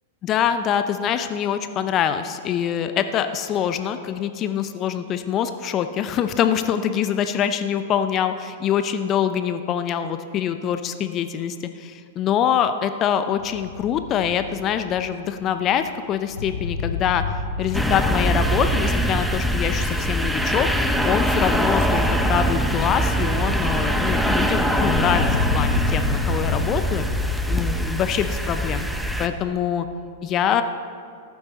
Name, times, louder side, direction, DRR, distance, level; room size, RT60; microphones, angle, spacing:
voice 1, 0.2-17.2 17.6-20.7 21.0-25.3 25.5-27.0 27.5-28.9 29.2-29.9 30.2-30.6, left 9 dB, 35° left, 10 dB, 0.6 m, -24 dB
sound 1, 13.3-27.8, left 4 dB, 75° left, 1.0 m, -31 dB
sound 2, 17.7-29.3, equal, ahead, 0.8 m, -23 dB
14.0 x 11.5 x 4.2 m, 2.4 s
figure-of-eight pair, 100°, 0 cm